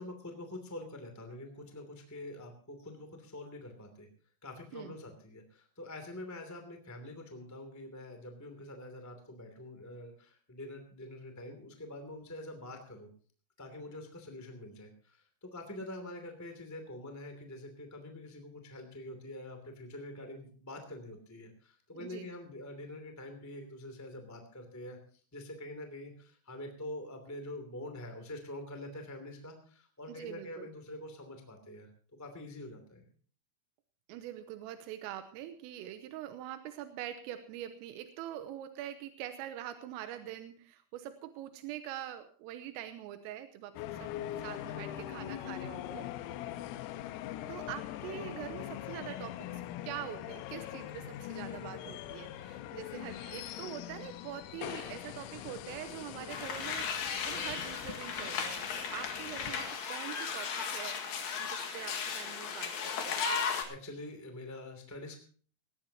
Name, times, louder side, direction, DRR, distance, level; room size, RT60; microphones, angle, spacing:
voice 1, 0.0-4.1 4.4-13.1 13.6-25.0 25.3-33.0 63.6-65.2, left 1 dB, 10° left, 5 dB, 0.8 m, -45 dB
voice 2, 21.9-22.3 30.1-30.7 34.1-46.1 47.5-61.0 61.4-63.2, right 11 dB, 85° right, 9 dB, 3.5 m, -44 dB
sound 1, 43.8-59.7, left 12 dB, 85° left, 3.5 m, -42 dB
sound 2, 56.3-63.6, left 6 dB, 55° left, 2.9 m, -36 dB
19.0 x 17.0 x 2.9 m, 0.43 s
omnidirectional pair, 5.9 m